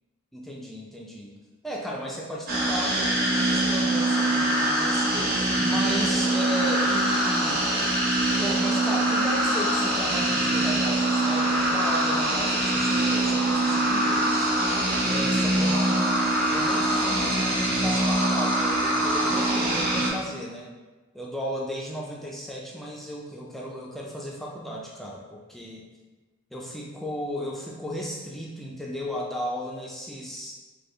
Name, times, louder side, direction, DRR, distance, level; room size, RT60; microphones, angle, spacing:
voice 1, 0.3-1.3 1.6-7.7 8.4-14.8 15.1-20.7 21.1-25.9 26.5-30.5, equal, ahead, -3 dB, 0.3 m, -35 dB
sound 1, 2.5-20.1, right 1 dB, 45° right, 1.0 m, -23 dB
4.4 x 2.3 x 3.1 m, 1.3 s
head